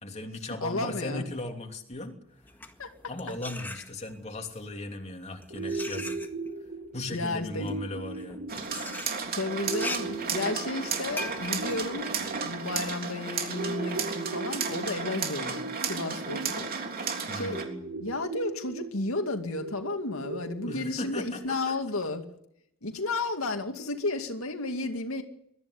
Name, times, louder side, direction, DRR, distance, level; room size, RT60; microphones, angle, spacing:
voice 1, 0.0-2.2 3.1-6.2 6.9-8.4 17.3-18.1 20.7-21.8, left 1 dB, 35° left, 3 dB, 3.1 m, -37 dB
voice 2, 0.6-1.2 2.8-2.9 7.1-7.8 9.3-17.6 18.0-22.2 22.8-25.2, left 2 dB, 85° left, 5 dB, 2.3 m, -33 dB
sound 1, 2.4-4.3 5.1-13.0, left 2 dB, 10° left, 1.8 m, -41 dB
sound 2, 5.5-21.5, right 3 dB, 65° right, 3.1 m, -39 dB
sound 3, 8.5-17.6, right 5 dB, 45° right, 3.4 m, -33 dB
22.5 x 14.5 x 9.8 m, 0.75 s
head